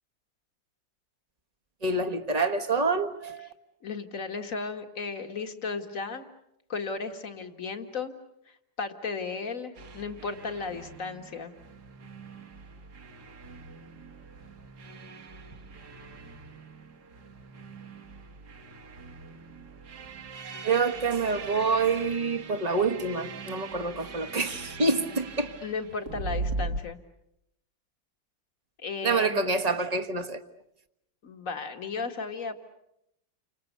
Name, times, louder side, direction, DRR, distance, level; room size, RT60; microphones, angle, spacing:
voice 1, 1.8-3.5 20.6-25.5 29.0-30.4, right 3 dB, 25° right, 1.3 m, -27 dB
voice 2, 3.8-6.3 6.7-8.2 8.5-11.5 25.6-27.0 28.8-29.4 31.2-32.6, left 4 dB, 45° left, 2.2 m, -35 dB
sound 1, 9.7-26.8, right 3 dB, 60° right, 2.3 m, -41 dB
30.0 x 26.5 x 6.8 m
omnidirectional pair, 2.0 m